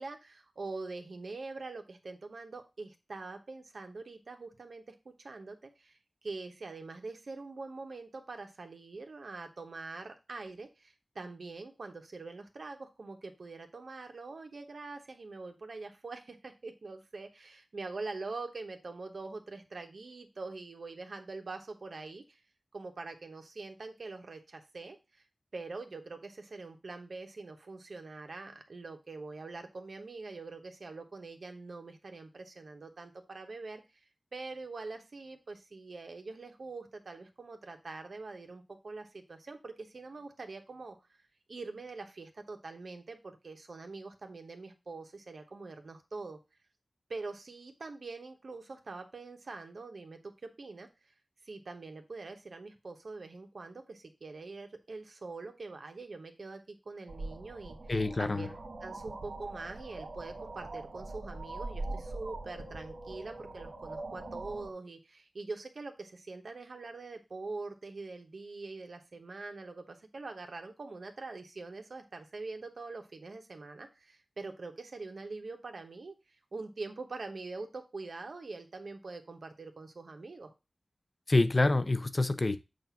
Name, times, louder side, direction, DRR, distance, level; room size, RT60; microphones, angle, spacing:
voice 1, 0.0-6.0 6.2-22.4 22.7-25.0 25.5-34.0 34.3-41.0 41.5-46.4 47.1-50.3 50.6-50.9 51.4-57.8 58.2-58.5 58.8-76.1 76.5-80.5, right 3 dB, 70° right, 1.1 m, -44 dB
sound 1, 57.1-64.7, right 2 dB, 90° right, 1.3 m, -42 dB
voice 2, 57.9-58.5 81.3-82.6, left 2 dB, 40° left, 0.6 m, -27 dB
7.5 x 2.5 x 5.8 m
wide cardioid pair, 65°, 0 cm